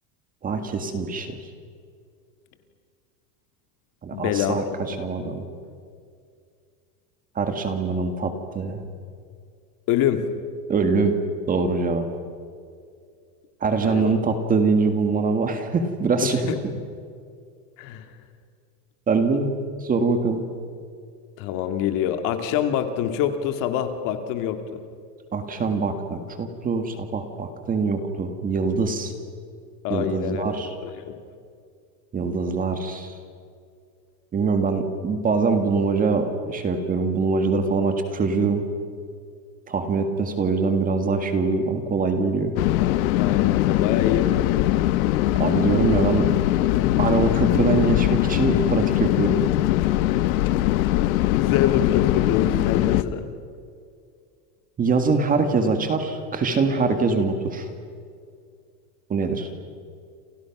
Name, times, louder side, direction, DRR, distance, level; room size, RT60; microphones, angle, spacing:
voice 1, 0.4-1.4 4.0-5.4 7.4-8.8 10.7-11.2 11.5-12.1 13.6-16.5 19.1-19.5 19.8-20.5 25.3-29.1 29.9-30.7 32.1-33.1 34.3-38.6 39.7-42.5 45.4-46.3 47.0-49.4 54.8-57.7 59.1-59.5, right 4 dB, 15° right, 6 dB, 1.8 m, -23 dB
voice 2, 4.1-5.0 9.9-10.3 13.8-14.1 16.5-16.6 17.8-18.1 21.4-24.8 29.8-30.5 30.8-31.2 43.2-44.7 51.3-53.2, left 10 dB, 40° left, 7 dB, 2.2 m, -25 dB
sound 1, 42.6-53.0, left 15 dB, 60° left, 1.1 m, -21 dB
29.5 x 28.5 x 6.1 m, 2.2 s
supercardioid pair, 165°, 48 cm